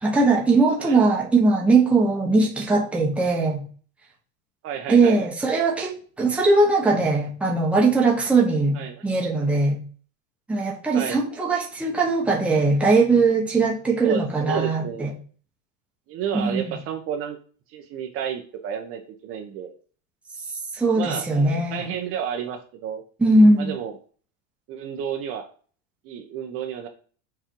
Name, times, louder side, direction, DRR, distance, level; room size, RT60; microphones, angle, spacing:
voice 1, 0.0-3.6 4.9-9.8 10.5-15.1 16.3-16.6 20.7-21.9 23.2-23.7, right 3 dB, 5° right, -2 dB, 1.0 m, -20 dB
voice 2, 4.6-5.2 8.7-9.1 10.9-11.2 14.0-15.1 16.1-17.4 17.7-19.7 20.9-21.2 21.7-23.0 23.6-24.0 24.7-25.4 26.0-26.9, right 8 dB, 30° right, 3 dB, 0.8 m, -31 dB
6.8 x 4.4 x 4.5 m, 0.42 s
supercardioid pair, 170°, 42 cm